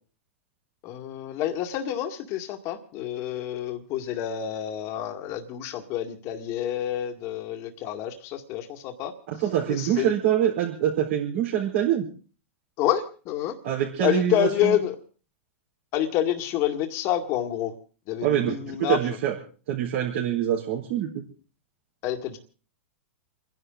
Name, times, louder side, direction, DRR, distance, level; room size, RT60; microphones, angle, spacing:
voice 1, 0.8-9.1 9.7-10.1 12.8-13.6 14.0-14.9 15.9-17.7 18.1-19.0 22.0-22.4, left 11 dB, 45° left, 5 dB, 2.0 m, -28 dB
voice 2, 9.3-12.1 13.6-14.8 18.2-19.3 19.7-21.2, right 10 dB, 65° right, -5 dB, 4.3 m, -25 dB
30.0 x 11.0 x 3.9 m, 0.37 s
hypercardioid pair, 120°, 7 cm